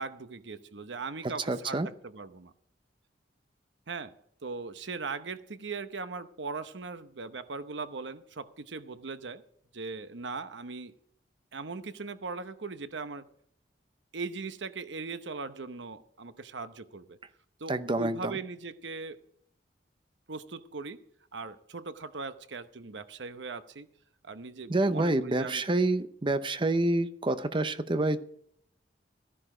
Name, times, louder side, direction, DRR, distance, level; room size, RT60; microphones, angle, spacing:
voice 1, 0.0-2.5 3.9-4.1 4.4-9.4 9.7-10.9 11.5-13.2 14.1-17.2 17.6-19.2 20.3-21.0 21.3-23.9 24.2-25.6, right 4 dB, 85° right, 11 dB, 0.9 m, -39 dB
voice 2, 1.2-1.9 17.7-18.4 24.7-28.2, right 2 dB, 30° right, 12 dB, 0.7 m, -28 dB
14.0 x 11.0 x 5.0 m, 0.68 s
head